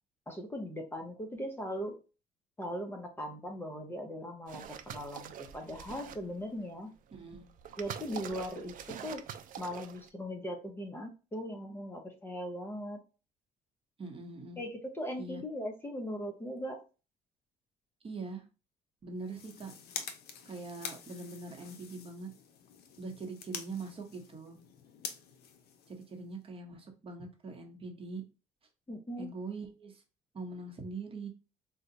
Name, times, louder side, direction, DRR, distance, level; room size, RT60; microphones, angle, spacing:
voice 1, 0.3-2.0 2.6-6.9 7.8-9.2 9.6-13.0 14.6-16.8 28.9-29.3, equal, 15° left, 2 dB, 0.6 m, -39 dB
sound 1, 4.5-6.4 7.1-10.1, right 9 dB, 55° right, 0.4 m, -45 dB
voice 2, 7.1-7.5 14.0-14.6 15.2-15.4 18.0-18.4 19.0-19.7 20.4-22.3 23.0-24.6 25.9-28.2 29.2-30.0 30.3-31.3, right 3 dB, 35° right, 2 dB, 0.9 m, -42 dB
sound 2, 19.2-26.5, left 7 dB, 70° left, 0.6 m, -46 dB
2.6 x 2.2 x 3.9 m, 0.32 s
cardioid pair, 110°, 17 cm